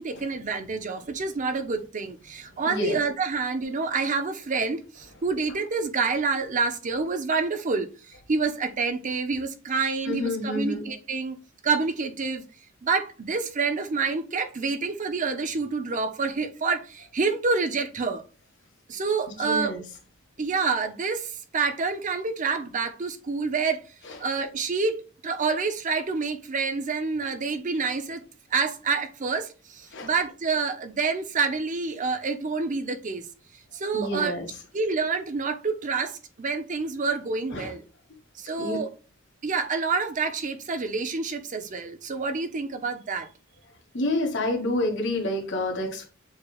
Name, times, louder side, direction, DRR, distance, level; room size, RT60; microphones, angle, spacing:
voice 1, 0.0-7.9 8.3-11.4 11.6-12.4 12.8-18.2 18.9-19.8 20.4-23.8 24.2-28.2 28.5-33.3 33.7-34.3 34.7-37.8 38.4-38.9 39.4-43.3, right 4 dB, 40° right, 0.6 m, -28 dB
voice 2, 2.6-3.0 10.1-10.9 19.4-19.8 29.9-30.1 33.9-34.5 37.5-37.7 38.6-38.8 43.9-46.1, left 1 dB, 60° left, 1.5 m, -28 dB
7.1 x 3.3 x 2.3 m
head